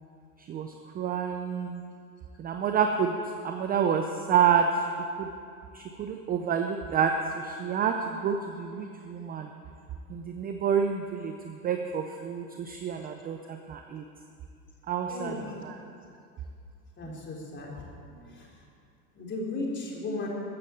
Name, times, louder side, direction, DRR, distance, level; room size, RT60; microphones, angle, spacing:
voice 1, 0.4-1.8 2.4-4.9 5.2-5.3 5.7-9.5 10.1-14.0 14.9-15.8 17.0-17.2, right 7 dB, 20° right, 5 dB, 0.6 m, -29 dB
voice 2, 15.1-15.5 17.0-17.7 18.1-18.5 19.2-20.3, left 2 dB, 25° left, -2 dB, 3.6 m, -36 dB
14.5 x 9.0 x 8.2 m, 2.4 s
hypercardioid pair, 125°, 49 cm